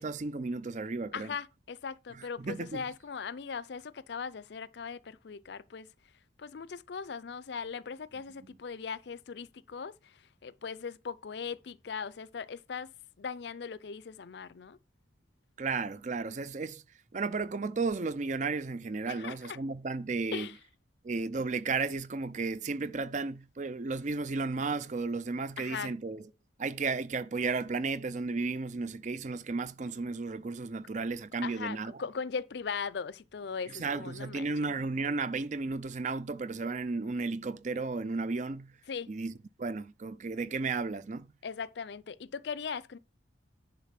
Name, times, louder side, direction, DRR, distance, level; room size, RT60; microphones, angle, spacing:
voice 1, 0.0-1.3 2.1-2.8 15.6-16.8 17.1-20.5 21.0-26.2 26.6-31.9 33.7-38.7 39.1-39.3 39.6-41.3, right 4 dB, 40° right, 0.5 m, -34 dB
voice 2, 1.1-5.9 6.4-9.9 10.4-12.9 13.2-14.8 19.1-19.6 20.3-20.5 25.6-25.9 31.4-34.6 38.9-39.1 41.4-43.0, left 6 dB, 60° left, 0.4 m, -39 dB
10.5 x 4.0 x 5.8 m
head